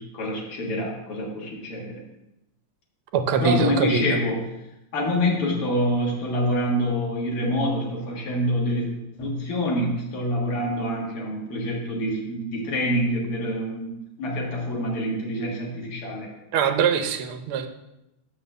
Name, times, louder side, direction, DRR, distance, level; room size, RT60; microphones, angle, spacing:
voice 1, 0.0-2.0 3.4-4.4 4.9-8.9 9.1-13.9 14.2-16.3, equal, 80° left, -3 dB, 2.6 m, -26 dB
voice 2, 3.1-4.2 16.5-17.7, right 5 dB, 75° right, 7 dB, 1.6 m, -23 dB
6.3 x 5.3 x 6.8 m, 0.91 s
omnidirectional pair, 2.4 m